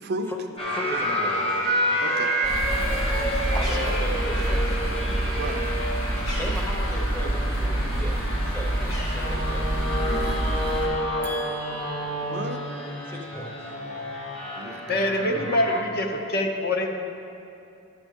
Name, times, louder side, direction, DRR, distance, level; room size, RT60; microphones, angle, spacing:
voice 1, 0.0-0.3 2.0-2.3 5.4-5.6 10.0-10.4 12.3-12.6 14.6-15.4, right 3 dB, 50° right, 5 dB, 0.5 m, -34 dB
sound 1, 0.6-15.8, equal, 25° left, 1.2 m, -29 dB
voice 2, 0.7-1.7 3.5-4.8 6.2-9.8 11.2-12.5 13.1-13.5, left 1 dB, 10° left, 0 dB, 0.7 m, -37 dB
sound 2, 2.4-10.9, right 1 dB, 90° left, 2.0 m, -26 dB
Bird, 3.1-7.6 7.9-9.9, left 1 dB, 65° left, 1.9 m, -42 dB
voice 3, 14.9-16.9, left 1 dB, 45° left, 3 dB, 0.7 m, -25 dB
12.5 x 6.0 x 3.6 m, 2.7 s
head